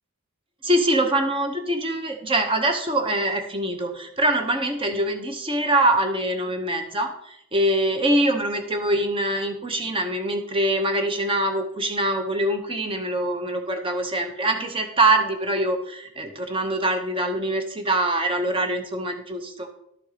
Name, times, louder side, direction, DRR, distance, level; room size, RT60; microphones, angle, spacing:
voice 1, 0.6-19.7, right 1 dB, 25° right, 6 dB, 0.9 m, -24 dB
12.0 x 4.4 x 4.9 m, 0.75 s
head